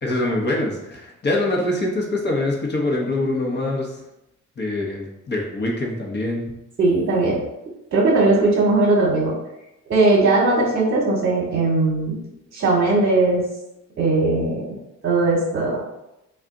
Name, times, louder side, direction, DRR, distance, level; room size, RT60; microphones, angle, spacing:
voice 1, 0.0-4.0 4.6-6.5, left 2 dB, 35° left, 0 dB, 1.0 m, -24 dB
voice 2, 6.8-7.4 7.9-9.4 9.9-12.2 12.5-13.4 14.0-14.8 15.0-15.8, right 2 dB, 40° right, -3 dB, 1.1 m, -19 dB
3.5 x 2.4 x 3.8 m, 0.89 s
cardioid pair, 90°, 30 cm